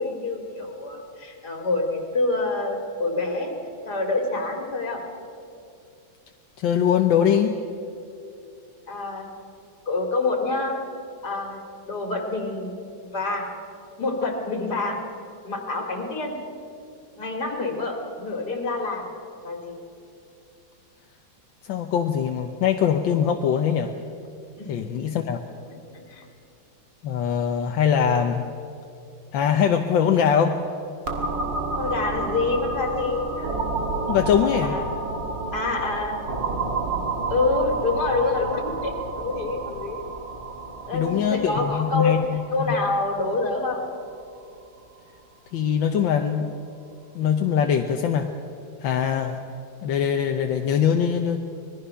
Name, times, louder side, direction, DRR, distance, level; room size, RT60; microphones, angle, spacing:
voice 1, 0.0-3.5 3.8-5.0 8.9-9.3 9.9-10.8 11.2-11.6 11.9-13.5 14.0-15.0 15.4-16.4 17.2-19.1 19.4-19.7 24.6-24.7 26.1-26.2 31.8-33.6 34.4-35.2 35.5-36.2 37.3-40.0 40.9-42.2 42.5-43.8, left 3 dB, 60° left, 2 dB, 3.0 m, -27 dB
voice 2, 6.6-7.6 21.7-23.9 24.7-25.4 27.0-28.4 29.3-30.6 34.1-34.7 40.9-42.4 42.7-42.8 45.5-46.5 47.1-48.3 48.8-49.4 49.8-51.4, left 8 dB, 85° left, 4 dB, 1.7 m, -22 dB
sound 1, 31.1-44.6, right 3 dB, 70° right, 2.5 m, -30 dB
25.5 x 20.0 x 5.7 m, 2.6 s
omnidirectional pair, 2.0 m